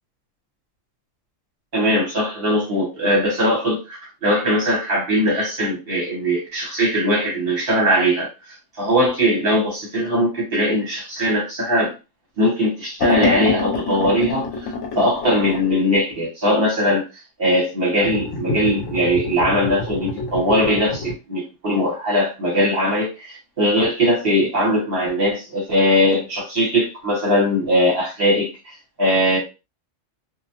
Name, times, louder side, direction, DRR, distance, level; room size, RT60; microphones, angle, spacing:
voice 1, 1.7-11.9 12.4-17.0 17.4-29.4, equal, 50° right, -3 dB, 1.1 m, -20 dB
sound 1, 13.0-15.7 18.0-21.1, left 3 dB, 70° left, 1.0 m, -26 dB
2.4 x 2.2 x 2.8 m, 0.29 s
omnidirectional pair, 1.3 m